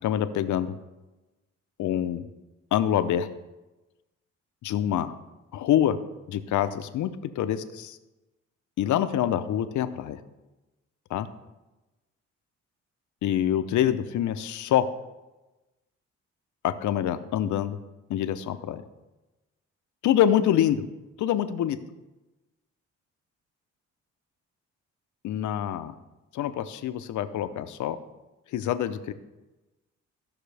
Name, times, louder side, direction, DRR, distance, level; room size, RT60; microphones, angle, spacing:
voice 1, 0.0-0.8 1.8-2.2 2.7-3.3 4.6-5.1 5.5-6.0 6.3-7.1 7.4-8.0 8.8-10.2 11.1-11.3 13.2-14.9 16.6-17.8 18.1-18.8 20.0-20.8 21.2-21.8 25.2-25.9 26.3-28.0 28.5-29.1, left 11 dB, 75° left, 10 dB, 0.7 m, -25 dB
15.5 x 5.9 x 3.4 m, 1.1 s
cardioid pair, 90°, 30 cm